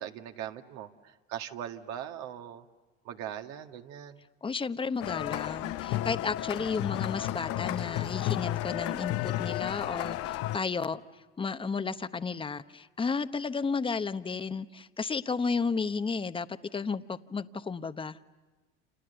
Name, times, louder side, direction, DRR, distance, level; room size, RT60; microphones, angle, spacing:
voice 1, 0.0-2.7 3.0-4.2, right 10 dB, 60° right, 5 dB, 1.9 m, -40 dB
voice 2, 4.4-11.0 11.4-16.5 16.7-18.2, left 5 dB, 15° left, 12 dB, 1.0 m, -33 dB
sound 1, 5.0-10.6, left 14 dB, 50° left, 0.8 m, -32 dB
29.5 x 28.5 x 6.9 m, 1.3 s
hypercardioid pair, 80°, 30 cm